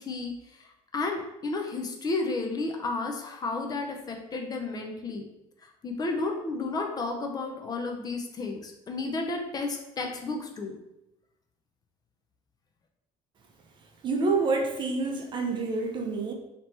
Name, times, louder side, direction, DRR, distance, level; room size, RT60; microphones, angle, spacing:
voice 1, 0.0-5.3 5.6-10.8, left 3 dB, 30° left, 3 dB, 0.5 m, -32 dB
voice 2, 14.0-16.3, right 3 dB, 35° right, 2 dB, 0.7 m, -27 dB
3.2 x 2.9 x 4.2 m, 0.88 s
cardioid pair, 135°, 13 cm